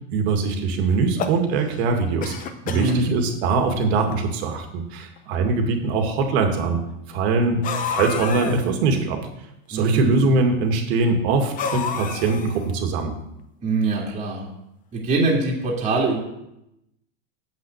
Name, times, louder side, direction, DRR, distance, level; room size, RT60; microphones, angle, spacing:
voice 1, 0.1-2.3 2.7-6.8 7.1-7.6 7.9-9.3 9.7-13.1, right 4 dB, 65° right, 4 dB, 2.3 m, -22 dB
sound 1, 0.9-1.8 2.2-3.0 3.8-3.9 4.1-4.2 5.2-5.3 7.6-8.7 11.6-12.7, left 7 dB, 25° left, 0.7 m, -29 dB
voice 2, 2.7-3.1 9.7-10.1 13.6-14.4 14.9-16.2, right 3 dB, 20° right, -3 dB, 2.2 m, -23 dB
8.0 x 6.1 x 8.1 m, 0.84 s
supercardioid pair, 160°, 34 cm